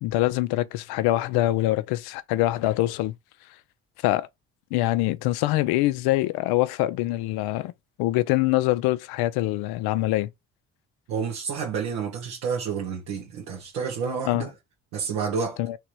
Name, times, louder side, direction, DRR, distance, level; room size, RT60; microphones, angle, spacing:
voice 1, 0.0-3.1 4.0-4.3 4.7-7.7 8.0-10.3 14.2-14.5 15.6-15.8, left 16 dB, 80° left, 0.6 m, -24 dB
voice 2, 11.1-14.5 14.9-15.6, right 6 dB, 85° right, 1.2 m, -29 dB
3.6 x 3.0 x 4.6 m
supercardioid pair, 60°, 38 cm